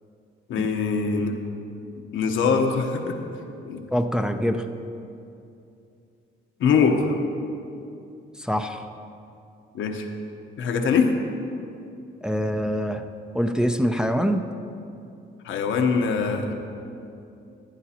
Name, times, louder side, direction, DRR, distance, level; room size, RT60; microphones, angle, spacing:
voice 1, 0.5-1.3 2.1-3.2 3.7-3.8 6.6-7.2 9.7-10.1 10.6-11.2 15.4-16.5, left 5 dB, 75° left, 3 dB, 1.0 m, -22 dB
voice 2, 3.9-4.7 8.4-8.9 12.2-13.0 13.3-14.4, equal, 5° right, 5 dB, 0.5 m, -24 dB
14.0 x 10.5 x 2.9 m, 2.6 s
cardioid pair, 90°, 20 cm